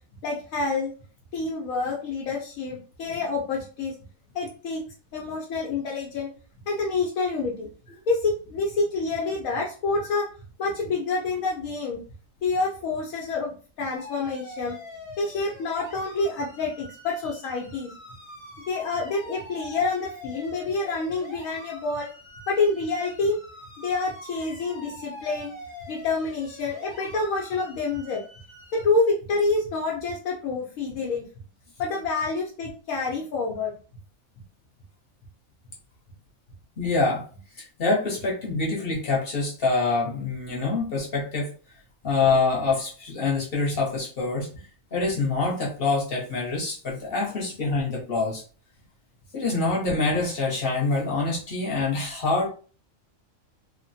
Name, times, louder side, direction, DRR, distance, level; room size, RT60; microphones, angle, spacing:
voice 1, 0.2-0.9 1.3-3.9 4.3-4.8 5.1-6.3 6.7-7.7 8.1-10.3 10.6-12.0 12.4-14.8 15.2-17.9 18.7-22.1 22.5-23.4 23.8-25.5 25.9-28.2 28.7-31.2 31.8-33.7, left 3 dB, 85° left, -2 dB, 1.1 m, -27 dB
sound 1, 14.0-28.9, left 1 dB, 25° left, 0.8 m, -44 dB
voice 2, 36.8-37.2 37.5-41.5 42.0-48.4 49.3-52.5, left 3 dB, 50° left, -3 dB, 1.1 m, -25 dB
3.0 x 2.1 x 2.6 m, 0.38 s
omnidirectional pair, 1.4 m